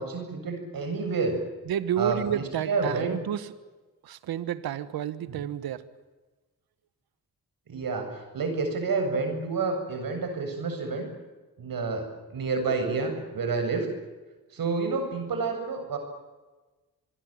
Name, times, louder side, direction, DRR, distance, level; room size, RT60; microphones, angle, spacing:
voice 1, 0.0-1.4 2.0-3.2 5.3-5.4 7.7-11.1 11.6-13.9 14.5-16.0, right 4 dB, 70° right, 5 dB, 7.8 m, -29 dB
voice 2, 1.7-3.5 4.0-5.8, right 10 dB, 85° right, 14 dB, 1.5 m, -30 dB
25.5 x 22.0 x 9.1 m, 1.2 s
cardioid pair, 55°, 36 cm